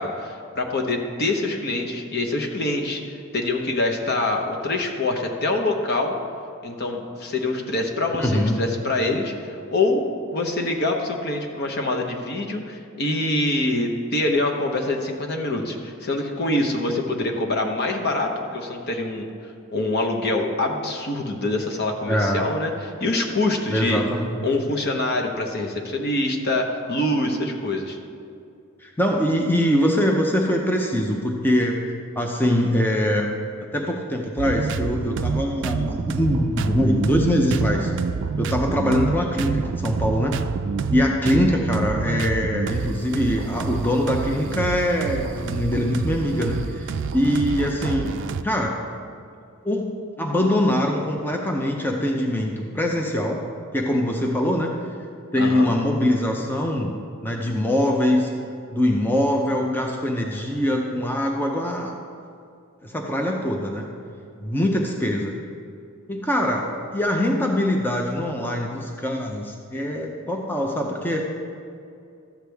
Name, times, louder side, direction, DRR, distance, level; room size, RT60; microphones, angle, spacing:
voice 1, 0.0-6.1 6.6-10.0 10.3-19.3 19.7-24.0 24.4-28.0 55.4-55.7, left 2 dB, 50° left, 2 dB, 1.0 m, -25 dB
voice 2, 8.2-8.6 22.1-22.5 23.7-24.4 28.8-31.8 32.2-33.3 33.7-37.9 38.4-40.4 40.9-48.1 48.4-48.8 49.6-53.4 53.7-54.7 55.3-56.9 57.2-58.3 58.7-61.9 62.8-63.9 64.4-65.3 66.1-66.7 66.9-71.3, left 1 dB, 10° left, 1 dB, 0.6 m, -23 dB
sound 1, 34.4-48.4, right 5 dB, 60° right, 0.3 m, -28 dB
13.0 x 8.0 x 3.4 m, 2.5 s
head